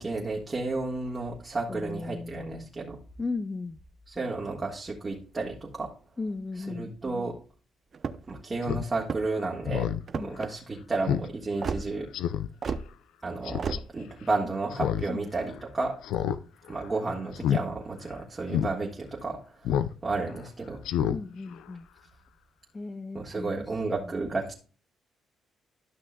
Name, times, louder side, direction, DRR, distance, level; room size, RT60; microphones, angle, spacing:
voice 1, 0.0-3.0 4.1-5.9 6.7-7.4 8.3-9.9 10.2-12.1 13.2-15.9 16.7-20.8 23.1-24.5, right 3 dB, 25° right, -2 dB, 1.6 m, -32 dB
voice 2, 1.7-2.7 3.2-3.8 6.2-6.9 10.1-10.3 15.1-15.3 21.1-21.9 22.7-24.1, left 3 dB, 25° left, 10 dB, 0.4 m, -36 dB
sound 1, 7.9-8.4 9.0-9.5 10.1-10.5 11.6-11.8 12.6-12.9 13.6-13.8, right 5 dB, 45° right, 0.6 m, -32 dB
Speech synthesizer, 8.6-8.8 9.2-9.3 9.6-10.0 10.4-10.5 11.1-11.3 11.6-11.7 12.1-12.5 13.4-13.8 14.7-15.1 15.4-15.5 16.0-16.4 16.7-16.9 17.3-17.6 18.0-18.1 18.5-18.7 19.6-19.9 20.3-20.4 20.8-21.2 21.5-21.6, left 10 dB, 85° left, 0.4 m, -28 dB
12.5 x 6.0 x 2.3 m, 0.39 s
cardioid pair, 90°, 0 cm